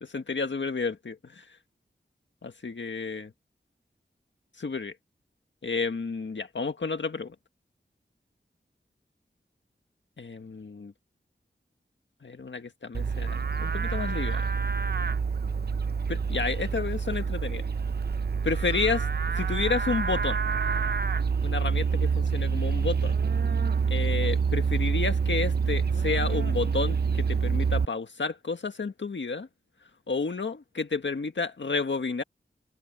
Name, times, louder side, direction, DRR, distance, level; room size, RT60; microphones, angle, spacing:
voice 1, 0.0-1.6 2.4-3.3 4.6-5.0 5.6-7.4 10.2-10.9 12.2-14.5 16.1-17.6 18.4-19.1 19.3-20.4 21.4-23.2 23.9-29.5 29.8-32.2, left 4 dB, 80° left, 1.8 m, -31 dB
Livestock farm animals working animals, 12.9-27.9, right 5 dB, 60° right, 0.6 m, -27 dB
wide cardioid pair, 75°, 19 cm